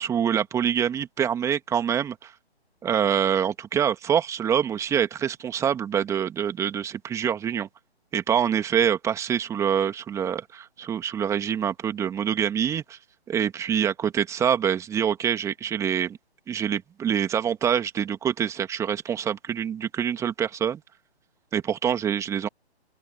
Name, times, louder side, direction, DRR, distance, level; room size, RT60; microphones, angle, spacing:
voice 1, 0.0-2.3 2.8-7.7 8.1-13.0 13.3-16.2 16.5-20.8 21.5-22.5, right 8 dB, 10° right, 2.3 m, -25 dB
open air
figure-of-eight pair, 145°, 33 cm